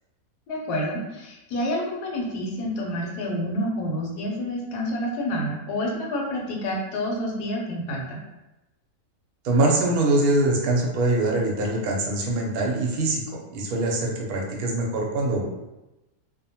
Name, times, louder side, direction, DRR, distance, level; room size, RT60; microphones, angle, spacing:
voice 1, 0.5-8.2, left 1 dB, 85° left, -1 dB, 1.2 m, -28 dB
voice 2, 9.4-15.4, right 2 dB, 75° right, -1 dB, 1.1 m, -23 dB
2.8 x 2.1 x 2.7 m, 0.99 s
omnidirectional pair, 1.7 m